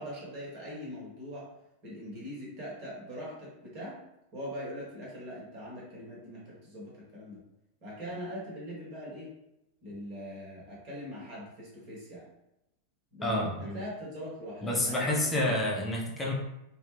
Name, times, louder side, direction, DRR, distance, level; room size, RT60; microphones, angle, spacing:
voice 1, 0.0-1.5 1.8-4.0 4.3-7.4 7.8-9.3 9.8-12.2 13.1-15.6, equal, 40° right, -4 dB, 1.4 m, -42 dB
voice 2, 13.2-13.8 14.6-16.3, left 1 dB, 15° left, -2 dB, 0.8 m, -29 dB
3.6 x 2.2 x 3.2 m, 0.88 s
figure-of-eight pair, 90°, 0 cm